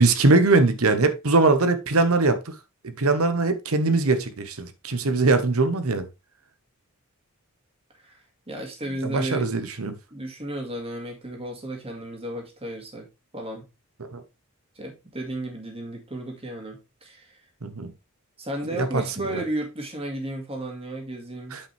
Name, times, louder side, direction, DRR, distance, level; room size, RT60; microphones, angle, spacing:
voice 1, 0.0-2.5 3.0-6.1 9.0-9.9 14.1-14.2 17.6-17.9 18.7-19.0 19.3-19.4 21.5-21.6, right 3 dB, 90° right, 1.0 m, -21 dB
voice 2, 8.5-9.5 10.1-13.1 13.3-13.7 14.8-17.4 18.4-21.6, right 1 dB, 30° right, 2.1 m, -33 dB
8.5 x 5.3 x 3.4 m
head